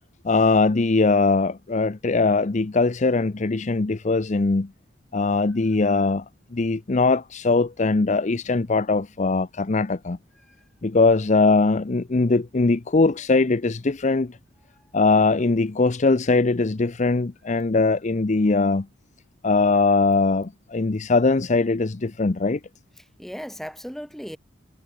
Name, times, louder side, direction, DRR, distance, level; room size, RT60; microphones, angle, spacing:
voice 1, 0.2-4.7 5.1-6.2 6.5-10.2 10.8-14.4 14.9-18.9 19.4-22.6, left 3 dB, 40° left, 0.6 m, -21 dB
voice 2, 23.0-24.4, equal, ahead, 3.3 m, -37 dB
head